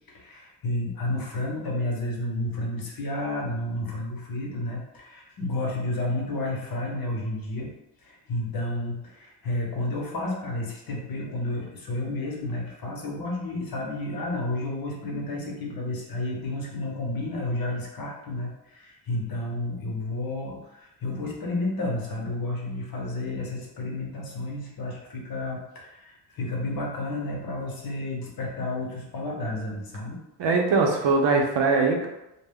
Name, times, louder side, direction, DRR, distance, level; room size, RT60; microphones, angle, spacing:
voice 1, 0.1-7.7 8.0-30.2, left 2 dB, 50° left, -1 dB, 0.9 m, -31 dB
voice 2, 30.4-32.1, right 4 dB, 70° right, 2 dB, 0.7 m, -21 dB
2.2 x 2.2 x 3.5 m, 0.91 s
cardioid pair, 85°, 44 cm